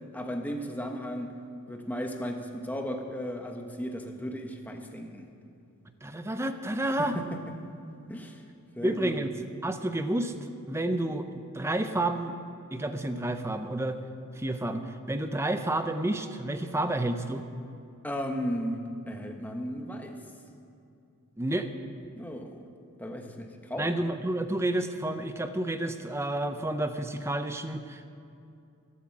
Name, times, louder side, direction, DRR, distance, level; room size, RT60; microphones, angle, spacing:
voice 1, 0.1-1.3 1.7-5.3 7.0-7.4 8.1-8.4 8.8-9.3 18.0-20.1 22.2-22.6 23.0-23.9, equal, 10° left, 3 dB, 1.1 m, -35 dB
voice 2, 6.0-7.2 8.8-9.3 9.6-12.3 12.7-14.0 14.4-17.5 21.4-21.7 23.8-28.1, right 1 dB, 10° right, 8 dB, 0.6 m, -30 dB
15.5 x 8.7 x 7.5 m, 2.6 s
head